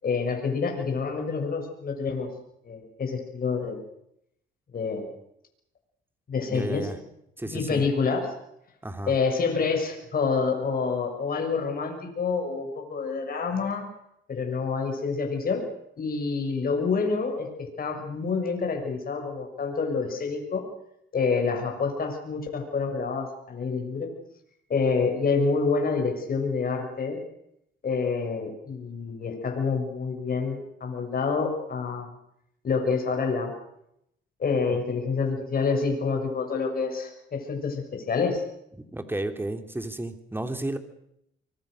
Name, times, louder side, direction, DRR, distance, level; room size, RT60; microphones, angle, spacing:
voice 1, 0.0-2.3 2.7-3.8 4.7-5.1 6.3-6.9 7.4-8.3 9.1-13.9 14.3-15.7 16.0-20.7 21.1-24.1 24.7-27.2 27.8-32.1 32.6-33.5 34.4-38.4, left 4 dB, 45° left, 3 dB, 6.9 m, -27 dB
voice 2, 6.5-7.0 7.4-7.8 8.8-9.1 34.7-34.8 38.8-40.8, right 1 dB, 10° right, 7 dB, 3.3 m, -32 dB
25.0 x 24.0 x 6.6 m, 0.78 s
cardioid pair, 90°, 20 cm